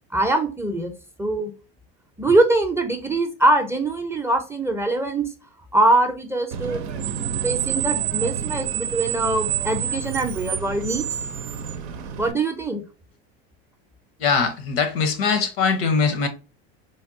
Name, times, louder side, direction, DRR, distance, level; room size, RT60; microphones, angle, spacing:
voice 1, 0.1-0.9 1.2-1.5 2.2-5.3 5.7-6.8 7.4-11.1 12.2-12.8, right 2 dB, 10° right, 0.5 m, -22 dB
Screech, 6.5-12.3, right 9 dB, 85° right, 0.5 m, -28 dB
voice 2, 14.2-16.3, left 5 dB, 75° left, 0.9 m, -21 dB
3.4 x 2.2 x 2.6 m
hypercardioid pair, 90°, 31 cm